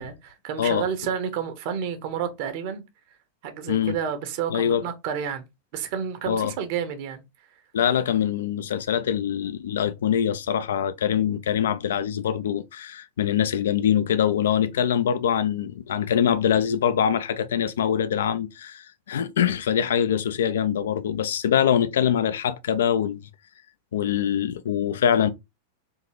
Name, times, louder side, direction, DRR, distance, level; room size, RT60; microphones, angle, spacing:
voice 1, 0.0-2.8 3.4-5.5 5.7-7.2, right 8 dB, 50° right, 0.7 m, -30 dB
voice 2, 4.5-4.8 6.3-6.5 7.7-23.3 23.9-25.3, left 9 dB, 60° left, 0.4 m, -24 dB
3.6 x 2.7 x 2.9 m
figure-of-eight pair, 90°, 0 cm